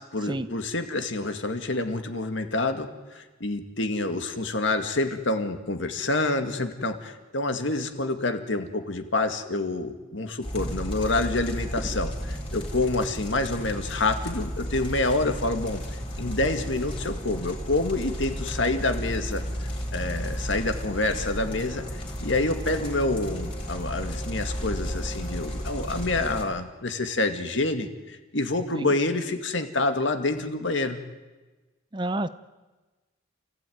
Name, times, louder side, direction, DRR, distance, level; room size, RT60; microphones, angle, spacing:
voice 1, 0.0-15.8 16.2-31.0, left 2 dB, 60° left, 7 dB, 2.1 m, -27 dB
sound 1, 10.4-26.4, equal, 25° left, 4.3 m, -33 dB
voice 2, 31.9-32.3, right 1 dB, 20° right, 13 dB, 0.7 m, -29 dB
29.0 x 15.5 x 9.4 m, 1.2 s
head